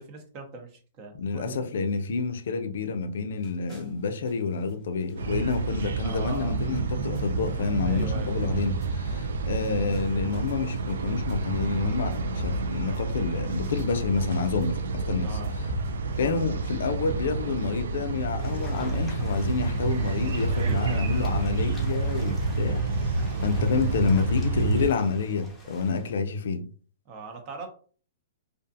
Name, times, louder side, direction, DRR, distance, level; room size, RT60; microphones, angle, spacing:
voice 1, 0.0-1.6 5.4-5.7 6.0-6.6 7.8-8.5 15.2-15.5 20.5-21.1 27.1-27.7, right 3 dB, 35° right, 0.7 m, -40 dB
voice 2, 1.1-15.4 16.2-22.9 23.4-26.7, left 5 dB, 70° left, 0.4 m, -28 dB
sound 1, 3.3-16.5, equal, 20° right, 1.0 m, -45 dB
sound 2, 5.2-24.9, right 3 dB, 80° right, 0.3 m, -29 dB
sound 3, 18.4-26.1, left 1 dB, 10° left, 0.7 m, -46 dB
2.4 x 2.4 x 2.6 m
hypercardioid pair, 150°, 0 cm